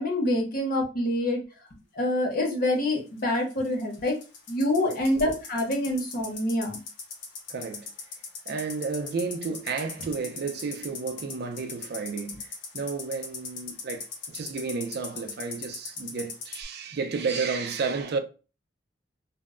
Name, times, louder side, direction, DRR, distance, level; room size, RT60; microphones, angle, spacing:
voice 1, 0.0-1.4 2.0-4.1 4.5-6.8, left 1 dB, 50° left, 0.8 m, -26 dB
sound 1, 3.2-16.6, left 5 dB, 85° left, 0.6 m, -39 dB
voice 2, 7.5-7.9 8.5-18.2, right 4 dB, 60° right, 0.4 m, -32 dB
2.1 x 2.0 x 3.6 m
head